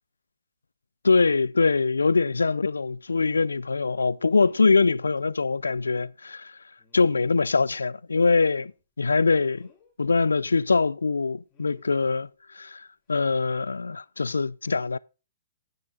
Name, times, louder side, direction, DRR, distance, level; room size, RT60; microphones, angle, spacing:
voice 1, 1.0-6.6 6.9-8.7 9.0-9.7 10.0-12.3 12.5-15.0, left 4 dB, 90° left, 0.4 m, -23 dB
sound 1, 3.3-3.5 4.3-4.8 5.2-5.3 5.6-5.9 6.8-7.7 8.1-8.9 9.5-9.9 11.5-11.9 13.1-13.3 13.7-13.8, left 6 dB, 20° left, 3.3 m, -59 dB
9.2 x 6.8 x 5.0 m
hypercardioid pair, 130°, 0 cm